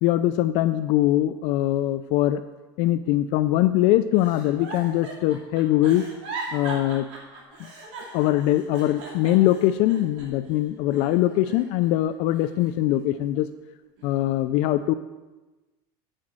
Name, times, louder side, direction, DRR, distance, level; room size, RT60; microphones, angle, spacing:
voice 1, 0.0-2.4 2.8-6.1 6.5-7.1 8.1-13.5 14.0-14.9, left 14 dB, 55° left, 11 dB, 0.4 m, -22 dB
Giggle, 4.1-10.5 10.9-11.9 12.3-13.4 14.0-14.3, right 3 dB, 60° right, 2.7 m, -39 dB
8.8 x 5.1 x 7.4 m, 1.1 s
supercardioid pair, 140°, 12 cm